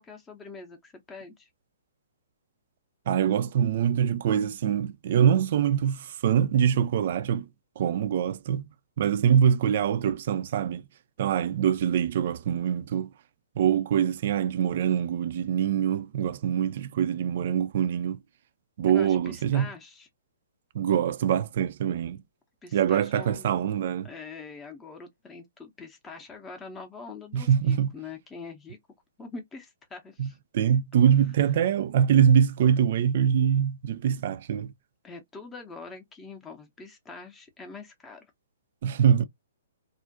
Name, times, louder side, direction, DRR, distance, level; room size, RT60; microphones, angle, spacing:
voice 1, 0.0-1.5 18.9-20.1 22.6-23.5 24.0-28.8 29.2-30.4 35.0-38.3, left 4 dB, 15° left, 0.6 m, -44 dB
voice 2, 3.1-7.5 7.8-8.6 9.0-10.8 11.2-13.1 13.6-18.2 18.8-19.7 20.7-22.2 22.7-24.1 27.3-27.9 30.2-30.3 30.5-34.7 38.8-39.3, right 8 dB, 50° right, 0.3 m, -24 dB
2.4 x 2.1 x 2.4 m
figure-of-eight pair, 120°, 0 cm